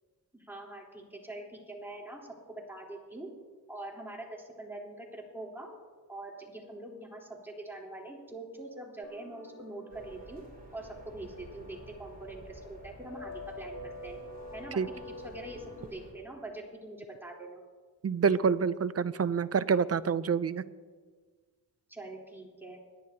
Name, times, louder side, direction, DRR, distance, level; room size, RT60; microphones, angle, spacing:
voice 1, 0.3-3.3 3.7-5.7 6.1-10.4 10.7-14.2 14.5-14.8 15.1-17.6 21.9-22.8, right 2 dB, 5° right, -3 dB, 3.7 m, -44 dB
sound 1, 9.0-15.9, left 2 dB, 45° left, 2.3 m, -47 dB
sound 2, 9.9-16.1, right 2 dB, 20° right, 4.2 m, -52 dB
voice 2, 18.0-20.6, right 6 dB, 40° right, 15 dB, 0.6 m, -27 dB
24.5 x 11.0 x 2.9 m, 1.5 s
cardioid pair, 70°, 39 cm